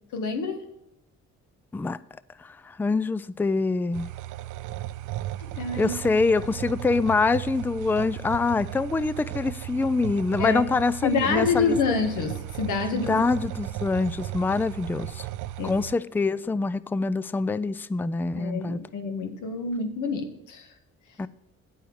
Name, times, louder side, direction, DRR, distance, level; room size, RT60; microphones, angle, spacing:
voice 1, 0.1-0.6 5.6-5.9 10.4-10.6 11.0-13.2 15.6-15.7 18.3-20.7, left 4 dB, 80° left, 1.7 m, -27 dB
voice 2, 2.4-4.1 5.8-11.8 12.9-15.3 15.6-18.8 21.2-21.3, left 3 dB, 5° left, 0.3 m, -25 dB
sound 1, 3.9-15.9, right 15 dB, 85° right, 0.4 m, -36 dB
9.2 x 7.9 x 4.7 m
cardioid pair, 90°, 30 cm